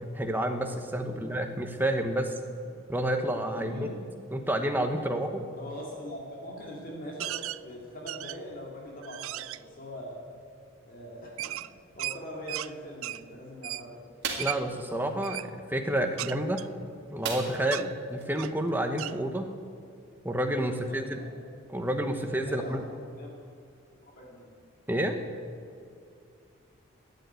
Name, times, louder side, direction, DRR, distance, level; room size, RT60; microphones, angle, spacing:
voice 1, 0.0-2.3 2.9-3.9 4.3-5.4 14.4-16.6 17.1-19.5 20.2-21.2 21.7-22.8 24.9-25.2, right 1 dB, 10° right, 5 dB, 1.0 m, -29 dB
voice 2, 3.6-4.0 5.6-10.2 10.8-11.5 12.0-14.0 18.1-18.3 20.6-21.3 22.2-22.8 23.2-23.3 24.0-24.5, equal, 40° left, -2 dB, 2.3 m, -42 dB
sound 1, 7.2-7.6 8.1-8.6 9.0-9.6 11.4-12.7 13.0-13.2 13.6-13.9 14.4-14.6 15.2-15.5 16.2-17.3 17.7-17.9 18.4-18.6 19.0-19.2, right 15 dB, 70° right, 0.3 m, -36 dB
sound 2, 14.2-14.6 17.2-17.8 18.2-18.3 18.7-18.8, right 5 dB, 50° right, 2.2 m, -34 dB
12.5 x 9.3 x 9.3 m, 2.4 s
head